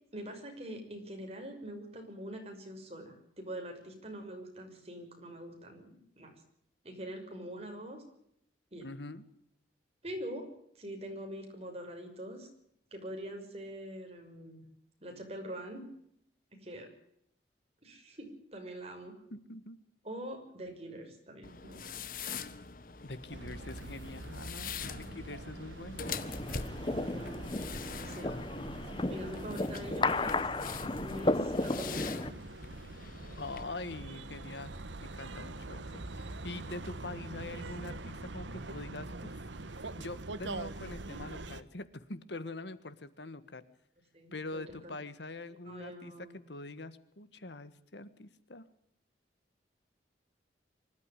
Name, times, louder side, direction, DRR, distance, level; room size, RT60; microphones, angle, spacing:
voice 1, 0.1-6.3 6.8-8.0 8.7-8.9 10.0-10.5 10.7-12.5 12.9-14.6 15.0-15.8 16.6-16.9 17.8-19.2 20.0-22.1 26.8-27.5 28.0-28.3 29.1-30.4 31.1-32.4 33.9-34.1 37.8-37.9 44.1-44.9 45.7-46.3, right 1 dB, 35° right, 3 dB, 6.2 m, -44 dB
voice 2, 8.8-9.2 19.3-19.8 23.0-26.1 28.2-29.1 33.4-34.7 35.0-39.4 40.0-43.6 44.3-48.7, left 2 dB, 70° left, 14 dB, 1.6 m, -44 dB
sound 1, 21.4-33.6, left 6 dB, 50° left, 1.4 m, -44 dB
sound 2, 23.3-41.6, right 2 dB, 85° right, 1.3 m, -44 dB
sound 3, 26.0-32.3, left 2 dB, 25° left, 0.9 m, -34 dB
24.5 x 12.5 x 10.0 m, 0.72 s
head